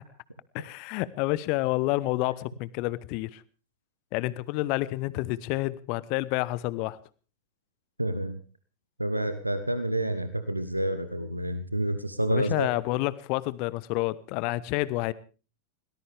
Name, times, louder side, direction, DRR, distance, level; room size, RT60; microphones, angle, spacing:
voice 1, 0.5-3.4 4.1-7.0 12.3-15.1, left 19 dB, 45° left, 19 dB, 0.9 m, -29 dB
voice 2, 8.0-8.4 9.0-12.7, right 1 dB, 85° right, 11 dB, 1.1 m, -28 dB
21.5 x 18.5 x 3.5 m, 0.37 s
figure-of-eight pair, 90°, 0 cm